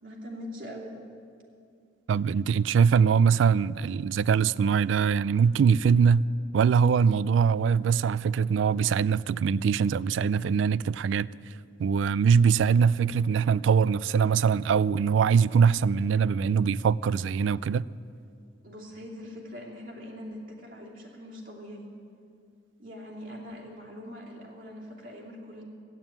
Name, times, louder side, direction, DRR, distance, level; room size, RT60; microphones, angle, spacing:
voice 1, 0.0-1.0 18.6-21.9 22.8-25.6, equal, 50° right, 2.6 m, -42 dB
voice 2, 2.1-6.3 6.5-11.3 11.8-17.9, right 6 dB, 80° right, 0.3 m, -22 dB
14.5 x 9.0 x 8.9 m
head